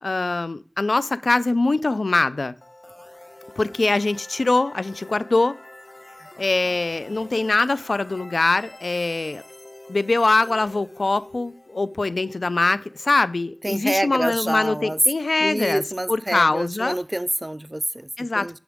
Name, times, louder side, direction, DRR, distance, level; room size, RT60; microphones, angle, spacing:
voice 1, 0.0-2.5 3.6-5.5 6.4-9.4 9.9-15.8 16.1-17.0 18.2-18.6, left 3 dB, 85° left, 0.4 m, -23 dB
sound 1, 2.6-14.4, left 1 dB, 35° left, 0.9 m, -46 dB
voice 2, 13.6-15.0 15.4-18.6, right 1 dB, 25° right, 0.3 m, -27 dB
11.0 x 4.7 x 3.5 m
wide cardioid pair, 45°, 0 cm